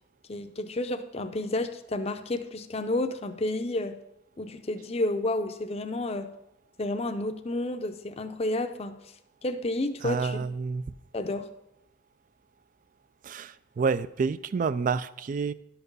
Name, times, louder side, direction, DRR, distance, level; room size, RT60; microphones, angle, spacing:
voice 1, 0.3-3.9 4.4-6.3 6.8-8.9 9.4-10.4 11.1-11.5, left 2 dB, 30° left, 8 dB, 0.6 m, -30 dB
voice 2, 10.0-10.9 13.2-15.5, right 5 dB, 40° right, 17 dB, 0.3 m, -29 dB
11.5 x 6.0 x 5.4 m, 0.85 s
head